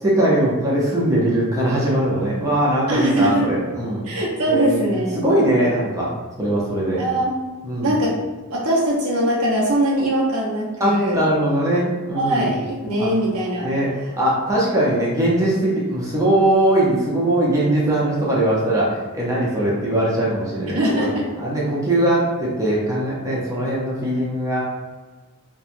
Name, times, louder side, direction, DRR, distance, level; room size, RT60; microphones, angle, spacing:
voice 1, 0.0-4.0 4.5-4.8 5.2-6.1 6.4-7.0 7.6-8.0 10.8-12.6 13.0-13.1 13.6-21.1 21.4-24.6, right 1 dB, 15° right, -6 dB, 0.5 m, -20 dB
voice 2, 2.9-3.5 4.1-5.2 7.0-7.3 7.8-8.2 8.5-11.2 12.1-13.7 20.7-21.3, right 1 dB, 80° right, -5 dB, 0.8 m, -21 dB
2.9 x 2.2 x 2.5 m, 1.3 s
head